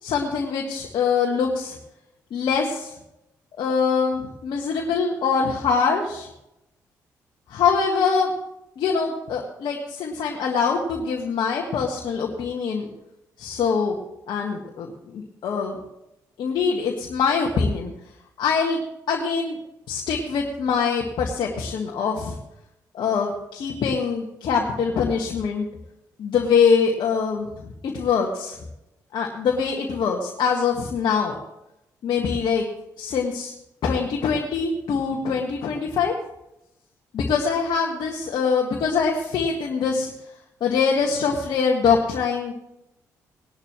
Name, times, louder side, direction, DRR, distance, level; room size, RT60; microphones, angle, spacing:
voice 1, 0.0-1.8 2.3-2.9 3.6-6.3 7.5-8.3 8.8-12.9 13.4-14.0 14.3-15.8 16.4-17.9 18.4-18.8 19.1-19.6 19.9-22.3 22.9-25.6 26.2-28.6 29.1-31.3 32.0-32.6 33.0-33.5 33.8-36.1 37.1-40.1 40.6-42.6, left 5 dB, 65° left, 0 dB, 1.6 m, -23 dB
19.0 x 11.5 x 3.1 m, 0.88 s
hypercardioid pair, 45°, 8 cm